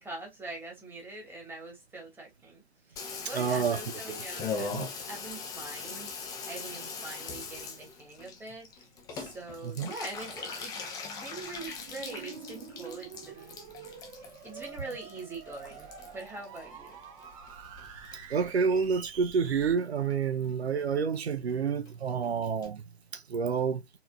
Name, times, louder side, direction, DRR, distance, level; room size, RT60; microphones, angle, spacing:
voice 1, 0.0-2.6 2.9-6.1 6.5-8.7 9.1-10.9 11.2-13.5 14.4-16.9, right 2 dB, 5° right, 1.9 m, -43 dB
Water tap faucet / Bathtub (filling or washing), 3.0-17.5 17.8-18.5 18.8-18.9 19.1-19.2 19.4-19.8 20.1-20.2 20.4-20.5 20.8-20.9 21.1-21.2 21.5-21.6 21.9-22.0 22.2-22.3 22.6-22.7, left 5 dB, 10° left, 0.6 m, -41 dB
voice 2, 3.3-3.8 4.1-4.2 4.7-4.8 9.6-9.9 18.3-22.8 23.1-23.8, right 6 dB, 70° right, 0.8 m, -29 dB
sound 1, 11.6-19.7, right 6 dB, 30° right, 1.1 m, -47 dB
4.2 x 4.0 x 2.4 m
figure-of-eight pair, 125°, 33 cm